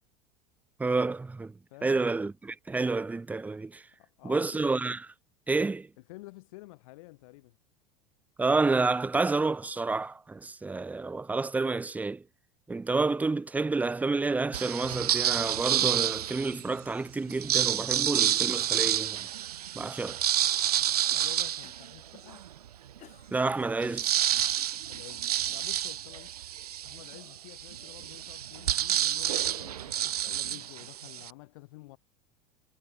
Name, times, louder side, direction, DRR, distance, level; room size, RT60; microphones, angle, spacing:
voice 1, 0.8-1.5 1.8-3.8 4.2-5.1 5.5-5.9 8.4-12.2 12.7-19.3 19.7-20.2 23.3-24.1, right 3 dB, 10° right, 0.4 m, -29 dB
voice 2, 1.7-2.1 4.0-4.7 6.0-7.6 21.0-22.5 24.8-26.4 26.8-32.0, left 22 dB, 65° left, 3.0 m, -50 dB
sound 1, 14.5-16.7 17.3-22.5 23.0-23.1 23.3-31.3, right 11 dB, 85° right, 0.5 m, -29 dB
Cough, 21.1-22.0 22.6-24.3, left 11 dB, 40° left, 7.1 m, -57 dB
hypercardioid pair, 85°, 19 cm